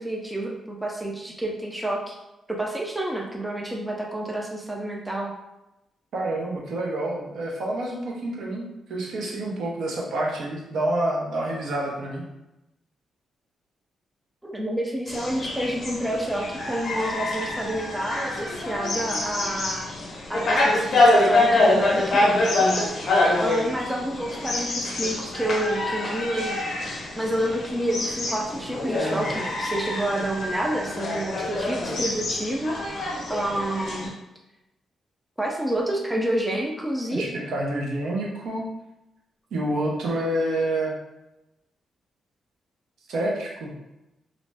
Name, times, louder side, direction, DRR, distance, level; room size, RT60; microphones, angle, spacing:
voice 1, 0.0-2.2 2.5-5.3 14.4-19.9 20.3-22.9 23.4-26.6 27.2-32.7 33.3-34.1 35.4-37.3, right 1 dB, 5° right, -1 dB, 0.3 m, -29 dB
voice 2, 6.1-8.6 8.9-12.2 37.1-38.6 39.5-40.9 43.1-43.7, right 1 dB, 75° right, -2 dB, 0.6 m, -28 dB
sound 1, 15.1-34.1, left 2 dB, 50° left, 0.6 m, -25 dB
2.5 x 2.1 x 3.2 m, 0.94 s
wide cardioid pair, 155°, 0 cm